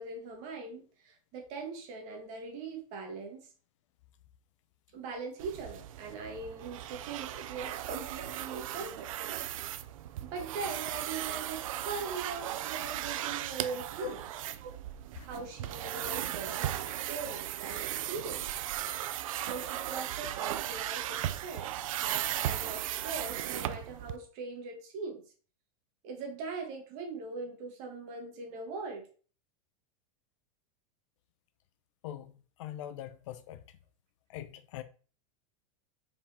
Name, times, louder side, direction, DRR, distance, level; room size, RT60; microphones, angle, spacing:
voice 1, 0.0-3.4 4.9-9.1 10.2-14.2 14.6-14.7 15.2-16.8 17.1-18.6 19.4-21.7 22.0-25.2 26.0-29.1, right 4 dB, 40° right, 2.1 m, -41 dB
sound 1, 5.4-24.2, right 12 dB, 70° right, 0.6 m, -37 dB
voice 2, 32.6-33.6 34.3-34.8, left 12 dB, 60° left, 0.7 m, -41 dB
5.4 x 5.0 x 4.3 m
supercardioid pair, 165°, 18 cm